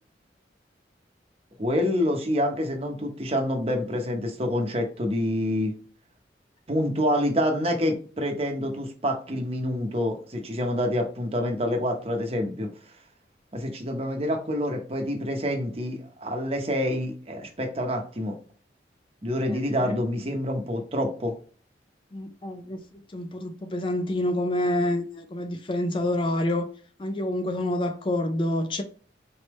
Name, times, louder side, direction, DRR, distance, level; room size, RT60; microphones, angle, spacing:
voice 1, 1.6-5.7 6.7-12.7 13.5-18.3 19.2-21.3, equal, 35° right, 0.9 m, -27 dB
voice 2, 22.1-26.7 27.0-28.8, left 1 dB, 30° left, 0.4 m, -27 dB
4.2 x 3.5 x 3.0 m
head